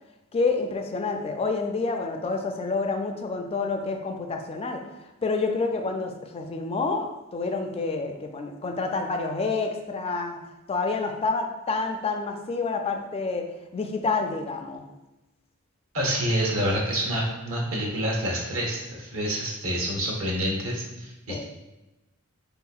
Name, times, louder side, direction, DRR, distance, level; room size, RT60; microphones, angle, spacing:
voice 1, 0.3-4.9 5.2-10.4 10.7-14.9 21.3-21.4, left 4 dB, 25° left, 4 dB, 0.3 m, -28 dB
voice 2, 15.9-21.4, equal, 70° right, -1 dB, 0.9 m, -27 dB
3.9 x 2.8 x 2.3 m, 1.0 s
head